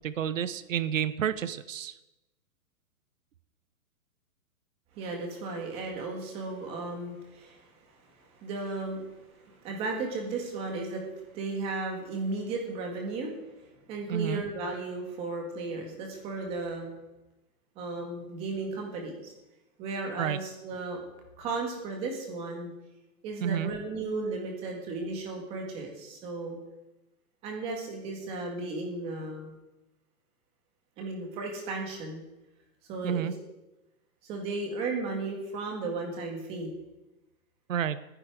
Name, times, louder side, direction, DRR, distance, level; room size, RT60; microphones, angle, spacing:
voice 1, 0.0-1.9 14.1-14.4 20.2-20.4 23.4-23.7 33.0-33.3 37.7-38.0, right 9 dB, 60° right, 14 dB, 0.9 m, -30 dB
voice 2, 5.0-7.7 8.3-13.3 13.9-16.9 17.8-19.3 19.8-21.0 21.4-22.7 23.2-26.6 27.4-29.5 31.0-32.2 32.9-33.3 34.2-36.7, right 3 dB, 15° right, 1 dB, 1.9 m, -35 dB
19.5 x 10.0 x 4.9 m, 0.98 s
hypercardioid pair, 175°, 43 cm